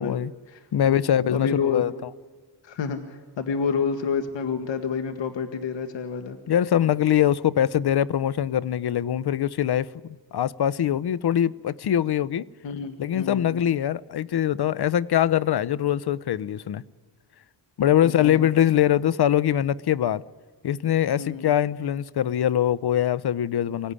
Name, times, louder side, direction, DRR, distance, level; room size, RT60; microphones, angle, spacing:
voice 1, 0.0-0.3 0.7-1.9 6.5-9.9 10.3-12.5 13.0-16.8 17.8-20.2 20.6-23.9, left 10 dB, 65° left, 0.8 m, -23 dB
voice 2, 1.3-1.8 2.6-6.4 12.6-13.6 18.0-18.4 21.2-21.5, left 6 dB, 80° left, 1.7 m, -29 dB
26.0 x 17.0 x 10.0 m
cardioid pair, 70°, 43 cm